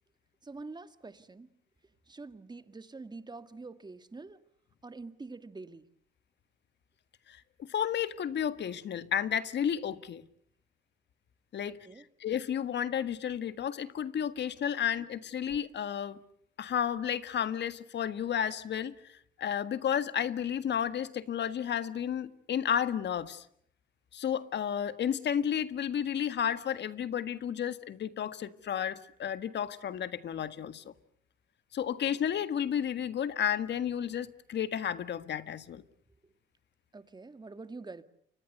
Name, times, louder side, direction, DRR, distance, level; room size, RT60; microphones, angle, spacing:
voice 1, 0.4-1.5 2.1-4.4 4.8-5.9 11.7-12.1 36.9-38.0, right 3 dB, 20° right, 1.8 m, -46 dB
voice 2, 7.3-10.2 11.5-11.8 12.2-16.2 16.6-19.0 19.4-23.4 24.1-30.8 31.7-35.8, left 9 dB, 60° left, 1.7 m, -32 dB
29.5 x 25.0 x 6.8 m
cardioid pair, 90°, 20 cm